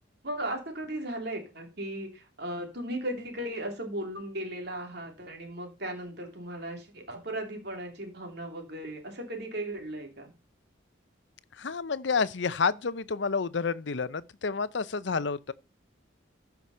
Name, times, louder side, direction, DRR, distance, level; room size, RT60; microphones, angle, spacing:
voice 1, 0.2-10.3, right 1 dB, 55° right, 2.9 m, -36 dB
voice 2, 11.5-15.5, left 5 dB, 65° left, 0.6 m, -29 dB
14.5 x 6.0 x 5.5 m
head